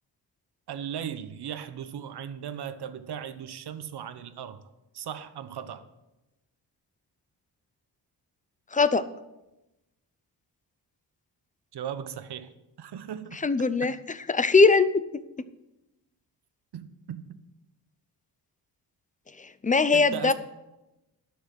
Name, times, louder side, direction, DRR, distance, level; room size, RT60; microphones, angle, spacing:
voice 1, 0.7-4.7 4.9-5.9 11.7-12.5 12.8-14.0 16.7-17.2 19.9-20.3, right 9 dB, 65° right, 11 dB, 1.0 m, -37 dB
voice 2, 8.7-9.0 13.4-13.9 14.3-15.0 19.6-20.3, left 4 dB, 20° left, 14 dB, 0.6 m, -20 dB
12.0 x 6.5 x 7.6 m, 0.99 s
cardioid pair, 85°, 42 cm